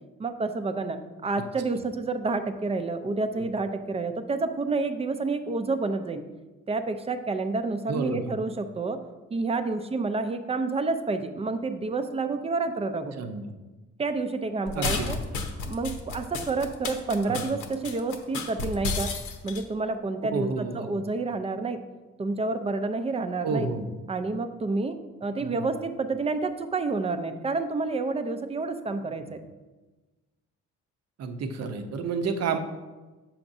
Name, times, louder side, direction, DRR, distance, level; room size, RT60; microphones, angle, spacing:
voice 1, 0.2-6.2 6.7-9.0 9.3-13.1 14.0-15.2 15.6-19.1 19.4-21.8 22.2-23.7 24.1-29.4, right 3 dB, 20° right, 9 dB, 0.5 m, -29 dB
voice 2, 7.9-8.3 13.1-13.5 14.7-15.4 17.3-17.5 20.3-20.9 23.4-23.9 25.4-25.7 31.2-32.6, right 4 dB, 55° right, 7 dB, 0.7 m, -31 dB
sound 1, 14.7-19.6, left 4 dB, 80° left, 0.9 m, -32 dB
7.2 x 5.8 x 2.6 m, 1.2 s
cardioid pair, 90°, 30 cm